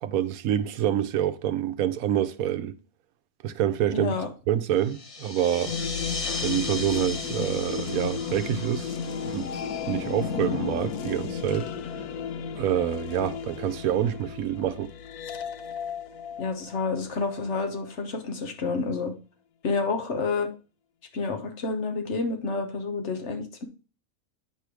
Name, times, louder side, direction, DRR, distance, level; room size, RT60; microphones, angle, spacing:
voice 1, 0.0-2.8 3.4-4.1 4.5-8.9 9.2-9.5 9.8-11.7 12.6-14.9, right 11 dB, 75° right, 1.0 m, -27 dB
voice 2, 3.9-4.3 16.4-19.1 19.6-20.5 21.1-23.6, left 4 dB, 55° left, 1.2 m, -29 dB
sound 1, 4.8-10.9, left 3 dB, 30° left, 0.6 m, -37 dB
sound 2, 5.6-17.4, left 6 dB, 90° left, 1.2 m, -34 dB
9.2 x 3.4 x 6.0 m
omnidirectional pair, 1.5 m